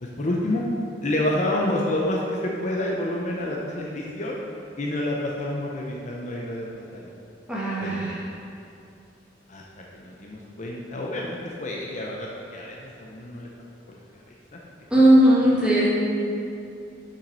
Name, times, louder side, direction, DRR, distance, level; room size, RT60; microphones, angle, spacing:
voice 1, 0.0-0.6 1.0-4.4 4.8-7.1 7.8-8.1 9.5-9.6 9.9-13.5 13.9-14.0 14.5-14.6, left 1 dB, 40° left, -2 dB, 0.7 m, -29 dB
voice 2, 7.5-8.1 14.9-15.9, right 1 dB, 5° right, -7 dB, 1.8 m, -18 dB
7.3 x 5.6 x 5.4 m, 2.6 s
head